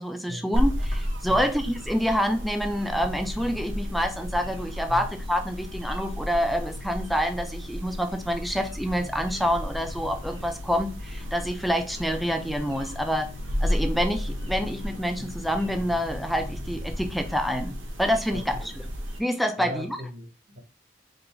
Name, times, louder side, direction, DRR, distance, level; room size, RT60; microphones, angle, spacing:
voice 1, 0.0-13.3 13.6-18.7 19.2-20.0, equal, ahead, 0.5 m, -27 dB
sound 1, 0.5-19.2, equal, 80° right, 1.4 m, -33 dB
sound 2, 2.9-17.4, left 3 dB, 65° left, 0.5 m, -43 dB
voice 2, 18.3-18.7 19.6-20.6, equal, 55° right, 1.1 m, -39 dB
3.9 x 2.5 x 4.5 m
head